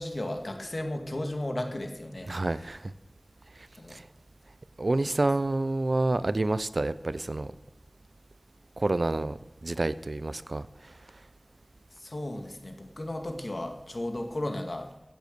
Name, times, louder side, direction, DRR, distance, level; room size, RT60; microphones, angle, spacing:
voice 1, 0.0-2.7 3.8-4.0 5.0-5.2 11.9-14.9, left 1 dB, 70° left, 5 dB, 2.1 m, -35 dB
voice 2, 2.3-2.9 3.9-4.0 4.8-7.5 8.8-10.7, right 2 dB, 75° right, 16 dB, 0.6 m, -28 dB
16.0 x 8.1 x 6.8 m, 0.92 s
wide cardioid pair, 45°, 0 cm